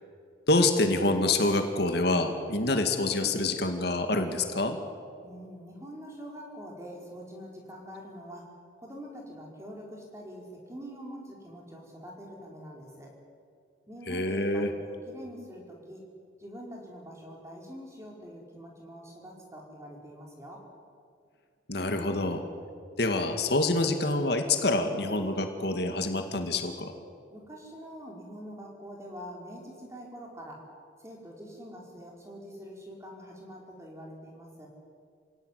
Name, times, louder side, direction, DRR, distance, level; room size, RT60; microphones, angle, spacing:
voice 1, 0.5-4.8 14.1-14.7 21.7-22.4 23.0-26.9, left 2 dB, 60° left, 6 dB, 2.2 m, -26 dB
voice 2, 5.2-8.5 8.8-13.1 13.9-16.0 16.4-20.6 27.3-30.7 31.0-34.7, equal, 15° right, -1 dB, 4.9 m, -45 dB
27.5 x 17.5 x 9.5 m, 2.2 s
head